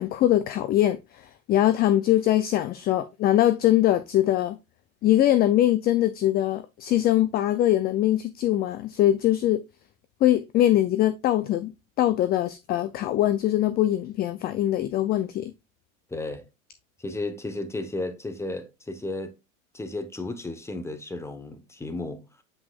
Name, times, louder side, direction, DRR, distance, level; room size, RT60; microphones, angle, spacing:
voice 1, 0.0-4.6 5.0-9.6 10.2-11.7 12.0-15.5, left 13 dB, 25° left, 0.4 m, -22 dB
voice 2, 16.1-16.4 17.0-19.4 19.7-22.2, left 2 dB, 5° left, 1.0 m, -33 dB
7.8 x 5.8 x 2.4 m
supercardioid pair, 120°, 42 cm